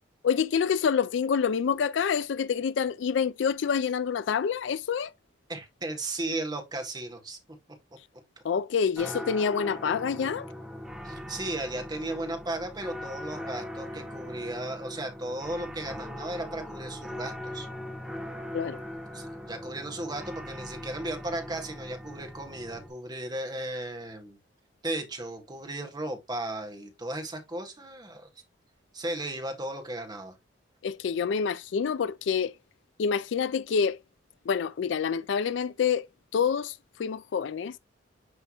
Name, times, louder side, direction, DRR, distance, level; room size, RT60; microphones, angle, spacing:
voice 1, 0.2-5.1 8.4-10.5 18.5-18.8 30.8-32.5 33.0-34.0 34.5-36.1 36.3-36.7 37.0-37.8, left 6 dB, 70° left, 0.4 m, -27 dB
voice 2, 5.5-7.4 9.0-9.1 11.0-17.7 19.1-24.4 24.8-28.3 28.9-30.3, right 1 dB, 20° right, 1.4 m, -35 dB
sound 1, 9.0-22.9, equal, 5° right, 1.9 m, -40 dB
9.7 x 3.4 x 2.9 m
head